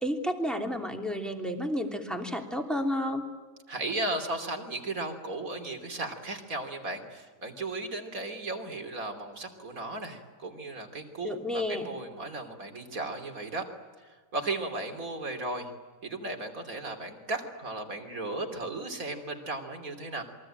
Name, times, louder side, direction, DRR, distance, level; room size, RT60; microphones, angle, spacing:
voice 1, 0.0-3.2 11.2-11.8, equal, ahead, 3 dB, 3.0 m, -31 dB
voice 2, 3.7-13.7 14.0-15.7 16.0-20.2, right 2 dB, 70° right, 5 dB, 3.5 m, -35 dB
27.5 x 23.0 x 8.9 m, 1.4 s
omnidirectional pair, 1.5 m